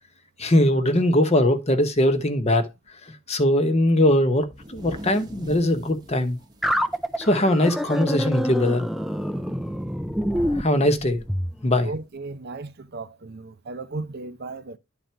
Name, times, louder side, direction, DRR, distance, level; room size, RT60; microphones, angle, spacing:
voice 1, 0.4-2.7 3.1-6.4 7.2-8.9 10.5-11.2 11.6-11.9, left 1 dB, 30° left, 1.0 m, -21 dB
sound 1, 4.4-8.1 8.5-8.6 9.0-9.4 10.6-10.7 11.7-11.8, equal, 20° right, 0.9 m, -43 dB
sound 2, 6.6-11.5, equal, ahead, 0.4 m, -27 dB
voice 2, 11.8-14.8, right 3 dB, 50° right, 0.6 m, -35 dB
10.5 x 3.9 x 4.5 m
head